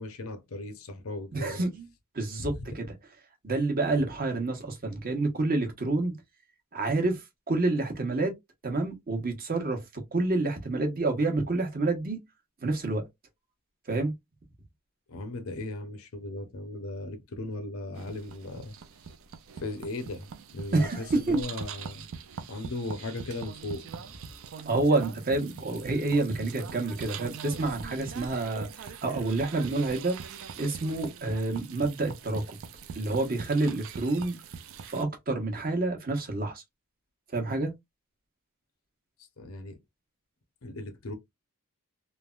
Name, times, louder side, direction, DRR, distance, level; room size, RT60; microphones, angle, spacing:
voice 1, 0.0-1.6 2.4-2.8 15.1-18.7 19.6-20.3 20.5-22.1 22.5-24.0 39.4-39.8 40.6-41.1, left 2 dB, 70° left, 0.7 m, -37 dB
voice 2, 1.3-1.9 2.1-2.9 3.4-6.1 6.7-7.2 7.5-8.3 8.6-12.2 12.6-13.0 13.9-14.1 20.7-21.4 24.6-30.2 30.6-32.6 32.9-34.4 34.9-36.6 37.3-37.7, right 2 dB, 45° right, 0.9 m, -28 dB
sound 1, 18.0-35.0, right 6 dB, 65° right, 0.4 m, -42 dB
3.2 x 2.1 x 2.3 m
head